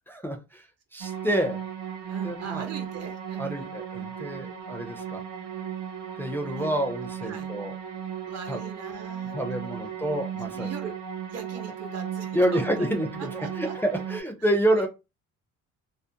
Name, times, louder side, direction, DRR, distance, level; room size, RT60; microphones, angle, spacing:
voice 1, 0.1-0.7 0.9-1.6 2.2-2.7 3.4-5.2 6.2-7.7 8.5-8.6 9.3-10.7 12.3-13.1 13.6-14.9, right 1 dB, 5° left, 2 dB, 0.4 m, -28 dB
sound 1, 1.0-14.2, right 8 dB, 90° right, 0.6 m, -36 dB
voice 2, 2.1-3.8 4.2-4.5 6.5-6.8 7.2-7.5 8.3-9.9 10.5-10.9 11.3-12.9 13.2-13.7 14.4-14.9, right 5 dB, 55° right, 5 dB, 0.8 m, -41 dB
2.4 x 2.0 x 2.7 m, 0.27 s
cardioid pair, 90°, 30 cm